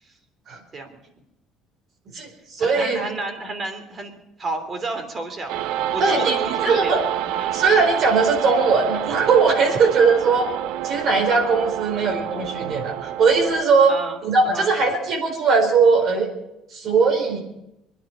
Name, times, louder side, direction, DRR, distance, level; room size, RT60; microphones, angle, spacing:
voice 1, 2.1-3.0 6.0-7.0 7.5-10.5 10.8-13.9 14.2-16.3 16.7-17.4, right 4 dB, 50° right, 4 dB, 4.5 m, -19 dB
voice 2, 2.6-4.1 4.4-6.9 7.3-7.5 13.9-14.2 14.4-14.7, right 3 dB, 30° right, 6 dB, 3.2 m, -31 dB
sound 1, 5.5-13.6, right 11 dB, 80° right, 0.6 m, -28 dB
25.5 x 10.5 x 5.6 m, 0.86 s
cardioid pair, 125°, 0 cm